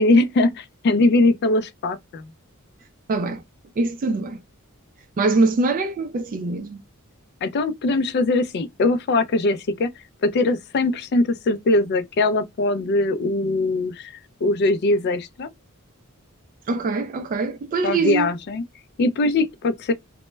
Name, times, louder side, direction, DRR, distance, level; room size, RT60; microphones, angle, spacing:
voice 1, 0.0-2.3 7.4-9.9 10.2-14.1 14.4-15.5 17.8-18.6 19.0-19.9, left 2 dB, 50° left, 0.3 m, -21 dB
voice 2, 3.1-3.4 3.8-4.4 5.2-6.8 16.7-18.3, right 3 dB, 40° right, 0.3 m, -23 dB
2.1 x 2.1 x 3.0 m
head